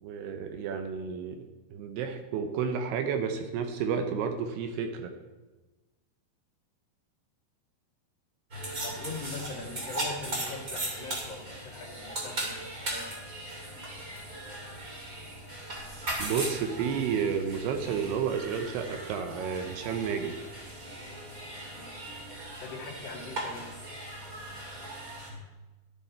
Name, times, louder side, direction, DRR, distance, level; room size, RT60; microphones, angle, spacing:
voice 1, 0.0-5.1 16.2-20.3, right 7 dB, 75° right, 6 dB, 2.7 m, -31 dB
sound 1, 8.5-25.3, right 1 dB, 30° right, 1.7 m, -38 dB
voice 2, 8.8-13.0 21.7-21.9 22.6-23.7, left 3 dB, 80° left, -1 dB, 1.0 m, -41 dB
12.5 x 11.0 x 4.3 m, 1.2 s
omnidirectional pair, 5.2 m